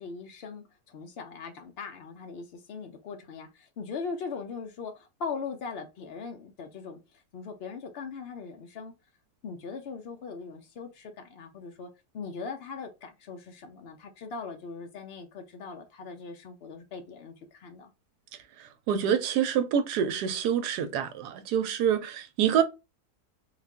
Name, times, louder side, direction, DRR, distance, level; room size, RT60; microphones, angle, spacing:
voice 1, 0.0-7.0 7.3-8.9 9.4-17.9, left 5 dB, 85° left, 0.5 m, -40 dB
voice 2, 18.6-22.6, right 8 dB, 80° right, 1.2 m, -26 dB
3.4 x 2.4 x 3.5 m
omnidirectional pair, 1.7 m